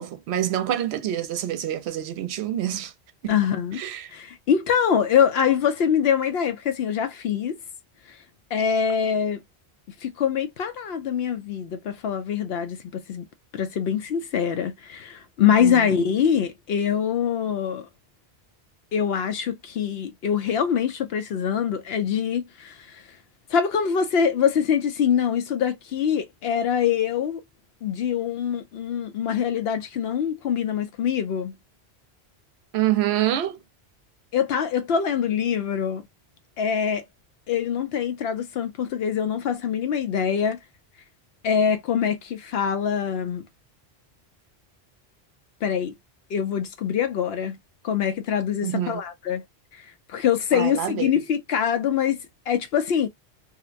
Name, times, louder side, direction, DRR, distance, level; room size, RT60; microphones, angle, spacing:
voice 1, 0.0-2.9 3.8-4.1 15.4-15.9 32.7-33.6 48.6-49.0 50.5-51.1, right 12 dB, 80° right, 0.8 m, -26 dB
voice 2, 3.3-3.8 4.1-7.6 8.1-8.2 8.5-9.4 10.0-13.2 13.5-17.9 18.9-23.0 23.5-27.4 27.8-31.6 34.3-36.1 36.6-37.0 37.5-40.6 41.4-43.4 45.6-45.9 46.3-47.6 47.8-49.4 49.7-52.2 52.5-53.1, left 8 dB, 70° left, 0.8 m, -24 dB
2.8 x 2.1 x 2.4 m
omnidirectional pair, 1.1 m